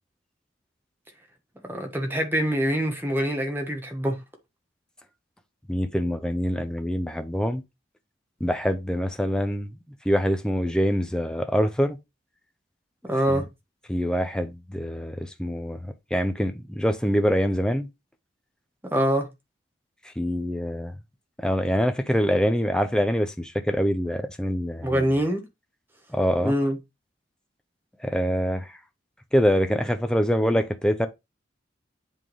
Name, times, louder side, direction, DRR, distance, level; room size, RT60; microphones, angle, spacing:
voice 1, 1.6-4.2 13.0-13.4 18.9-19.3 24.8-25.4 26.4-26.8, equal, 10° right, 1.3 m, -24 dB
voice 2, 5.7-7.6 8.4-9.7 10.0-12.0 13.3-13.4 13.9-17.9 20.2-20.9 21.4-25.0 26.1-26.5 28.0-28.7 29.3-31.1, equal, 5° left, 0.7 m, -25 dB
7.7 x 3.7 x 4.7 m
head